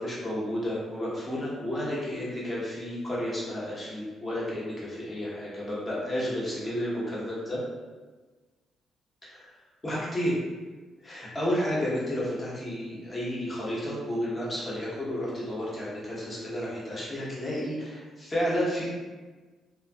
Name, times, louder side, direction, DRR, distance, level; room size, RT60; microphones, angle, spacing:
voice 1, 0.0-7.6 9.3-9.5 9.8-10.4 11.0-18.9, equal, 25° left, -7 dB, 0.9 m, -31 dB
2.6 x 2.1 x 2.2 m, 1.3 s
cardioid pair, 90°, 0 cm